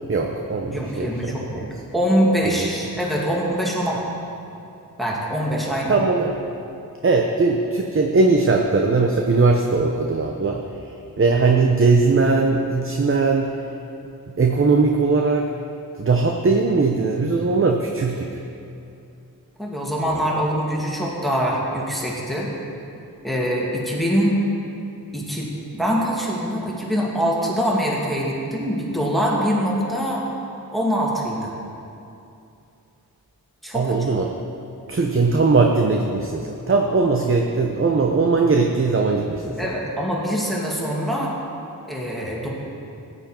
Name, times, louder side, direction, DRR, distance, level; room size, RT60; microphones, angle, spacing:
voice 1, 0.1-1.6 2.4-2.7 5.9-6.4 7.0-10.8 11.2-13.7 14.4-15.5 16.0-18.4 33.7-34.3 34.9-39.6, right 3 dB, 35° right, 2 dB, 0.8 m, -20 dB
voice 2, 0.7-4.0 5.0-6.0 19.6-22.5 23.2-24.4 25.1-30.2 30.7-31.5 33.6-34.0 39.6-41.4 41.9-42.5, equal, ahead, -4 dB, 2.4 m, -24 dB
15.0 x 9.8 x 4.5 m, 2.7 s
wide cardioid pair, 75°, 36 cm